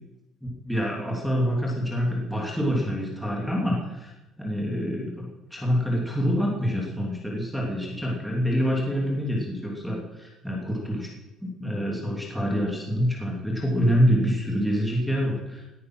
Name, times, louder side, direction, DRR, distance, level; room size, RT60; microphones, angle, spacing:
voice 1, 0.4-11.1 11.4-15.7, equal, ahead, -3 dB, 2.7 m, -26 dB
18.5 x 9.7 x 6.1 m, 1.0 s
cardioid pair, 150°, 0 cm